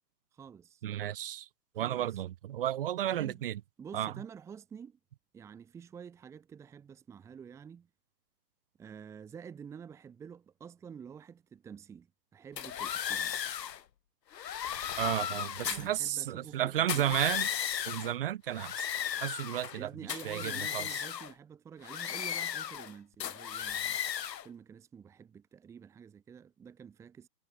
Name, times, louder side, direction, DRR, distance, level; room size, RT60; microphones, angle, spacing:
voice 1, 0.3-0.8 1.7-2.2 3.0-3.4 3.8-5.0 5.3-7.9 8.8-12.1 12.3-13.4 15.6-17.2 19.8-24.0 24.4-27.3, right 7 dB, 5° right, 2.1 m, -49 dB
voice 2, 0.8-1.5 1.7-3.6 3.9-4.1 15.0-17.5 17.8-18.9 19.2-19.9 20.2-21.0, right 12 dB, 35° right, 3.4 m, -33 dB
sound 1, 12.6-13.8 14.3-16.0 16.8-18.1 18.5-19.8 20.1-21.3 21.8-22.9 23.2-24.5, left 9 dB, 80° left, 1.1 m, -35 dB
hypercardioid pair, 170°, 50 cm